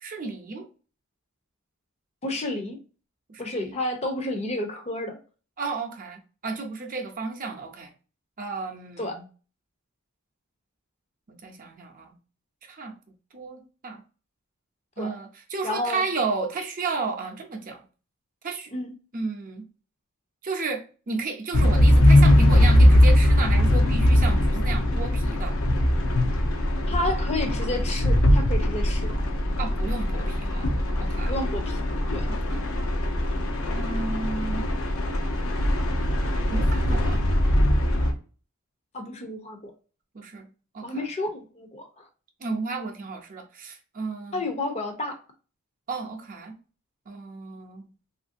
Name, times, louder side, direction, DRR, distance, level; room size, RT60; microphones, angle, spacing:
voice 1, 0.0-0.7 3.3-3.5 5.6-7.9 8.4-9.2 11.4-12.1 12.6-12.9 13.3-14.0 15.0-17.8 18.4-18.7 19.1-19.6 20.4-25.6 29.6-30.7 31.0-31.3 32.3-32.7 33.7-34.6 36.5-37.2 40.1-40.5 40.7-41.1 42.4-44.4 45.9-46.5 47.1-47.9, right 4 dB, 40° right, 0.5 m, -33 dB
voice 2, 2.2-2.8 3.4-5.2 9.0-9.2 15.0-15.1 15.6-16.0 18.7-18.9 26.9-29.1 31.3-31.8 32.1-32.3 38.9-39.7 40.8-42.0 44.3-45.2, left 2 dB, 30° left, 0.6 m, -31 dB
sound 1, 21.5-38.1, left 1 dB, 70° left, 0.6 m, -21 dB
3.1 x 2.5 x 2.5 m
head